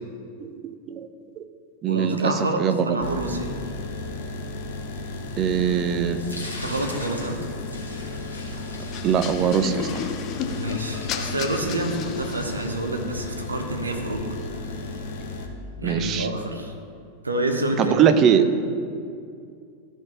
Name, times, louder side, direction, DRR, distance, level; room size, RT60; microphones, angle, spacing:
voice 1, 0.4-1.1 1.4-1.5 1.8-3.0 5.4-6.2 9.0-10.1 15.8-16.3 17.8-18.5, right 8 dB, 35° right, 9 dB, 0.5 m, -22 dB
voice 2, 1.9-3.5 6.6-7.4 10.5-14.3 15.8-16.7 17.2-18.0, right 1 dB, 80° right, 4 dB, 0.8 m, -28 dB
sound 1, 3.0-15.5, left 2 dB, 55° left, 0.9 m, -34 dB
sound 2, 6.2-12.2, left 2 dB, 85° left, 1.6 m, -42 dB
sound 3, 8.9-12.9, left 9 dB, 35° left, 0.4 m, -33 dB
13.0 x 4.6 x 3.5 m, 2.3 s
figure-of-eight pair, 90°, 0 cm